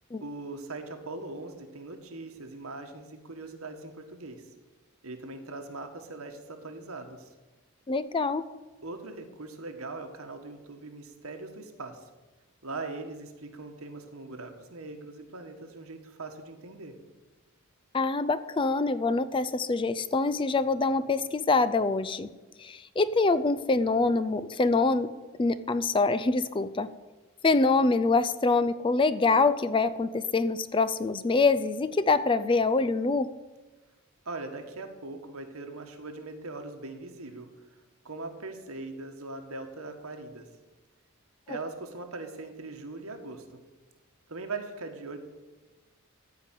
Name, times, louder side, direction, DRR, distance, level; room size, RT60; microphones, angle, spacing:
voice 1, 0.2-4.4 5.0-7.3 8.8-12.1 12.6-16.9 34.2-37.8 38.0-40.5 41.5-43.4 44.3-45.2, right 3 dB, 75° right, 5 dB, 1.6 m, -40 dB
voice 2, 7.9-8.5 17.9-22.3 22.6-25.1 25.4-26.9 27.4-33.3, left 3 dB, 25° left, 14 dB, 0.4 m, -25 dB
14.0 x 5.1 x 9.2 m, 1.2 s
head